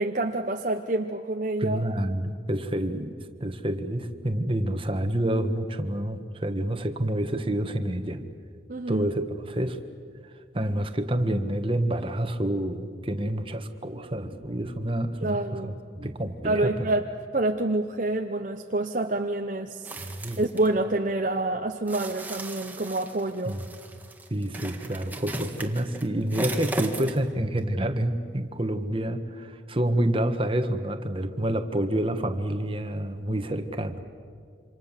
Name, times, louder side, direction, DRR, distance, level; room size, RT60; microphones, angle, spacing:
voice 1, 0.0-1.8 8.7-9.1 15.2-15.8 16.4-17.1 17.3-20.1 20.4-23.6, right 2 dB, 45° right, 4 dB, 0.9 m, -27 dB
voice 2, 1.6-3.1 3.4-8.3 8.9-9.8 10.5-16.9 20.0-20.4 23.4-23.6 24.3-34.0, right 1 dB, 30° right, 7 dB, 1.4 m, -28 dB
sound 1, 19.8-20.7 21.9-27.3 27.6-27.7, right 1 dB, 10° right, 1.7 m, -36 dB
27.5 x 26.0 x 7.5 m, 2.2 s
head